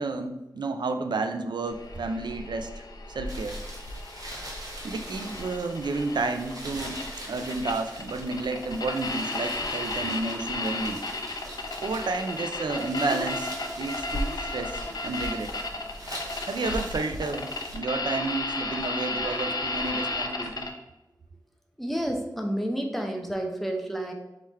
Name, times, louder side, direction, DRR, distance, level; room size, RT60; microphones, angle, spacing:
voice 1, 0.0-3.6 4.8-11.0 11.8-15.8 16.5-20.7, right 3 dB, 85° right, 7 dB, 0.4 m, -31 dB
Radio Static, 1.7-20.7, left 2 dB, 65° left, 0.6 m, -34 dB
sound 1, 3.3-17.7, right 1 dB, 55° right, 1.1 m, -43 dB
voice 2, 21.8-24.1, right 1 dB, ahead, 1 dB, 0.7 m, -30 dB
3.7 x 3.2 x 4.1 m, 0.97 s
wide cardioid pair, 95°, 7 cm